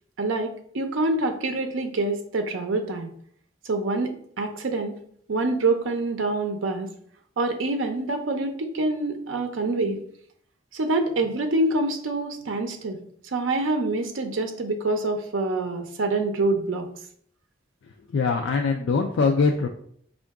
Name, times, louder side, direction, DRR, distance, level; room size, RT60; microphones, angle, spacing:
voice 1, 0.2-3.1 3.7-5.0 5.3-6.9 7.4-10.0 10.7-13.0 13.3-16.9, right 2 dB, 85° right, 5 dB, 0.5 m, -26 dB
voice 2, 18.1-19.7, left 4 dB, 70° left, 3 dB, 0.3 m, -22 dB
4.5 x 2.5 x 3.5 m, 0.63 s
head